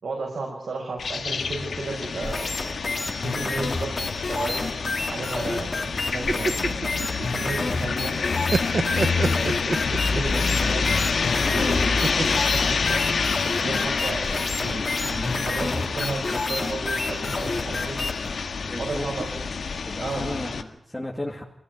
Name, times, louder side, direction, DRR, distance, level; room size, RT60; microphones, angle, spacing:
voice 1, 0.0-2.5 3.2-4.7 5.1-6.8 7.3-8.2 8.7-9.5 10.1-10.9 11.4-12.5 12.9-13.2 13.6-18.0 18.8-19.4 20.0-20.5, right 3 dB, 75° right, -1 dB, 5.6 m, -34 dB
sound 1, 1.0-20.6, left 5 dB, 85° left, 1.8 m, -27 dB
sound 2, 2.2-18.3, left 3 dB, 35° left, 3.2 m, -30 dB
voice 2, 6.0-6.4 18.6-19.0 19.8-21.4, left 1 dB, 10° left, -2 dB, 2.6 m, -34 dB
sound 3, 6.1-7.8 8.2-10.4 12.0-13.5, right 4 dB, 50° right, 1.0 m, -27 dB
25.5 x 16.0 x 9.4 m, 0.72 s
wide cardioid pair, 140°, 0 cm